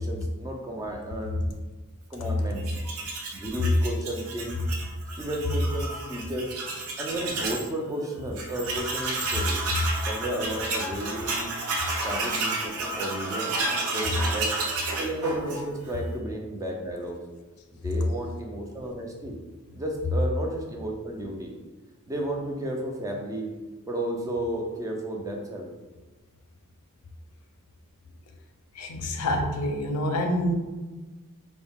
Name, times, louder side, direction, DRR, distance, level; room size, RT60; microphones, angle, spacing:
voice 1, 0.0-1.6 2.1-2.7 3.3-4.6 5.1-6.5 7.0-9.6 10.1-11.6 12.0-13.6 13.9-14.5 15.0-17.2 17.7-19.3 19.7-21.5 22.1-23.5 23.9-25.7, right 1 dB, 15° right, 1 dB, 0.3 m, -33 dB
Tools, 2.6-7.7 8.0-8.1 8.4-16.0, right 2 dB, 75° right, 0.5 m, -31 dB
voice 2, 28.8-30.5, equal, 75° left, 4 dB, 0.4 m, -27 dB
2.3 x 2.1 x 3.4 m, 1.2 s
head